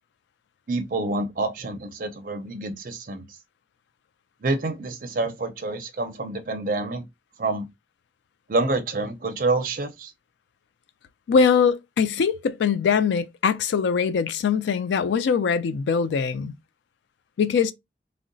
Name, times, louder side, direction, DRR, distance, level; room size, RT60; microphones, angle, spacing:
voice 1, 0.7-3.3 4.4-7.0 7.4-7.7 8.5-10.1, right 2 dB, 50° right, 0.5 m, -27 dB
voice 2, 11.3-16.5 17.4-17.7, left 6 dB, 85° left, 0.3 m, -22 dB
3.7 x 2.1 x 2.5 m
head